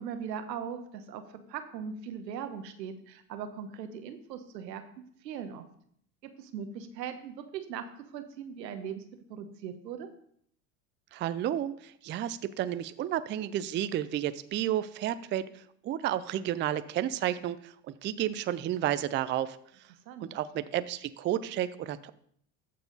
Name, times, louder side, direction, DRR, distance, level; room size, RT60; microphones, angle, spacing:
voice 1, 0.0-5.6 6.2-9.0 9.3-10.1 20.1-20.3, right 7 dB, 85° right, 9 dB, 1.1 m, -40 dB
voice 2, 11.1-15.4 15.8-19.6 20.2-22.1, right 11 dB, 25° right, 14 dB, 0.4 m, -31 dB
14.0 x 4.8 x 4.0 m, 0.66 s
hypercardioid pair, 80°, 49 cm